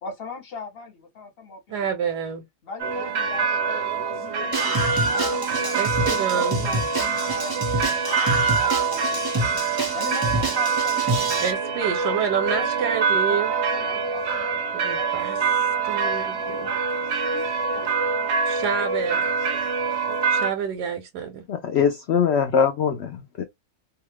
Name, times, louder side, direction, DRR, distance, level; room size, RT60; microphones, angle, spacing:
voice 1, 0.0-1.9 2.6-5.8 6.1-9.5 9.9-12.9 13.3-16.8 17.2-17.5 17.7-18.3, left 4 dB, 45° left, 1.0 m, -40 dB
voice 2, 1.7-2.4 5.8-6.6 11.4-13.5 14.7-15.4 15.9-16.7 18.5-19.3 20.3-21.4, right 7 dB, 85° right, 1.2 m, -28 dB
sound 1, 2.8-20.5, right 5 dB, 65° right, 0.7 m, -25 dB
Screaming, 4.5-11.5, right 2 dB, 35° right, 0.3 m, -27 dB
voice 3, 21.5-23.4, left 7 dB, 80° left, 0.6 m, -22 dB
2.7 x 2.4 x 3.1 m
omnidirectional pair, 1.7 m